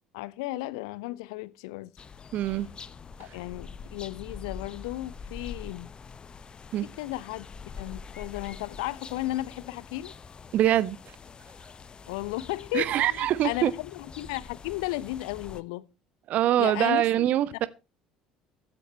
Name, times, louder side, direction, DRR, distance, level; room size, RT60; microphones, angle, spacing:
voice 1, 0.1-1.9 3.2-5.9 7.0-7.5 7.8-10.1 12.1-15.9 16.6-17.3, left 18 dB, 65° left, 0.9 m, -34 dB
sound 1, 2.0-15.6, left 5 dB, 30° left, 1.1 m, -45 dB
voice 2, 2.3-2.7 3.2-3.3 6.7-6.9 10.5-11.0 12.7-13.7 16.3-17.7, right 12 dB, 50° right, 1.0 m, -24 dB
15.0 x 14.5 x 3.0 m
figure-of-eight pair, 60°, 3 cm